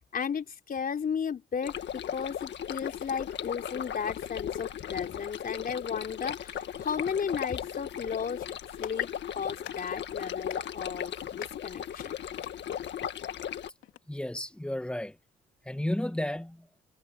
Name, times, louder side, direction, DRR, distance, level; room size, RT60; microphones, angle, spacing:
voice 1, 0.0-8.5 8.8-9.1 9.4-12.2, left 6 dB, 45° left, 4.0 m, -34 dB
sound 1, 1.6-13.7, left 9 dB, 65° left, 1.8 m, -37 dB
Clapping, 12.4-14.0, left 12 dB, 80° left, 2.6 m, -50 dB
voice 2, 14.1-15.2 15.6-16.7, left 1 dB, 5° left, 1.7 m, -32 dB
cardioid pair, 90°, 20 cm